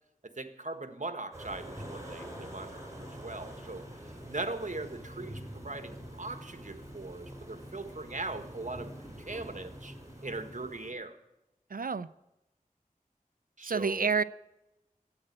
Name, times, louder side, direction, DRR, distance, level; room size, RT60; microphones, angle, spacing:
voice 1, 0.2-3.8 4.3-9.9 10.2-11.2 13.6-14.1, right 2 dB, 55° right, 8 dB, 1.5 m, -40 dB
sound 1, 1.3-10.9, equal, 20° right, 5.3 m, -45 dB
voice 2, 11.7-12.1 13.6-14.2, right 5 dB, 75° right, 16 dB, 0.5 m, -29 dB
14.0 x 9.0 x 8.8 m, 0.93 s
wide cardioid pair, 40°, 15 cm